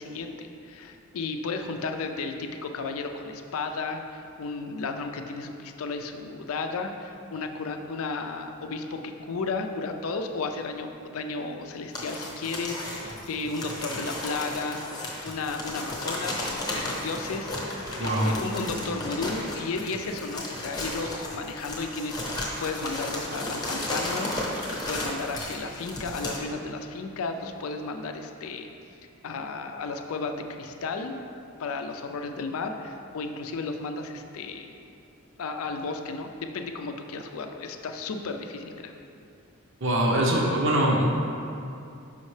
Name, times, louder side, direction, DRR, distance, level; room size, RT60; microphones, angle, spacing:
voice 1, 0.0-14.8 15.2-28.7 29.2-31.1 31.6-34.8 35.4-38.9, left 3 dB, 80° left, 6 dB, 0.4 m, -34 dB
sound 1, 11.9-26.4, left 1 dB, 20° left, 0.8 m, -34 dB
voice 2, 18.0-18.3 39.8-41.1, right 1 dB, 60° right, -1 dB, 0.7 m, -23 dB
5.6 x 5.3 x 3.2 m, 2.6 s
head